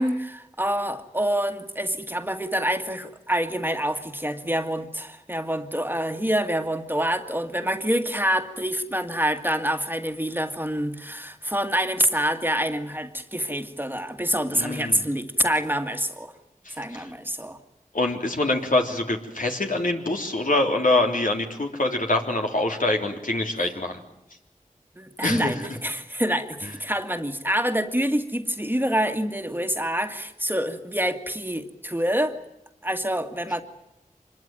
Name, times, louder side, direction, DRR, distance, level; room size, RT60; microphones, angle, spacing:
voice 1, 0.0-16.3 16.8-17.6 25.0-32.3 32.8-33.6, equal, 15° right, 6 dB, 2.0 m, -26 dB
voice 2, 14.6-15.0 16.7-17.0 17.9-24.0 25.2-25.5, left 2 dB, 70° left, 2 dB, 3.4 m, -25 dB
25.5 x 21.5 x 9.3 m, 0.83 s
wide cardioid pair, 45°, 14 cm